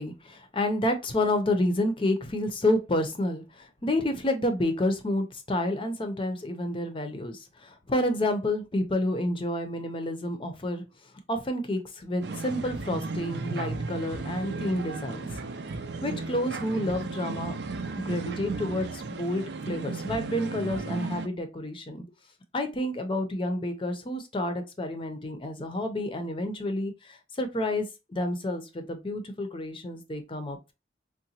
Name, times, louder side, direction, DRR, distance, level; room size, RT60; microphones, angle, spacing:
voice 1, 0.0-10.8 11.3-15.3 16.0-17.5 18.0-22.0 22.5-30.7, left 1 dB, 30° left, 0.6 m, -29 dB
sound 1, 12.2-21.3, right 3 dB, 65° right, 0.4 m, -35 dB
3.8 x 2.2 x 2.8 m
head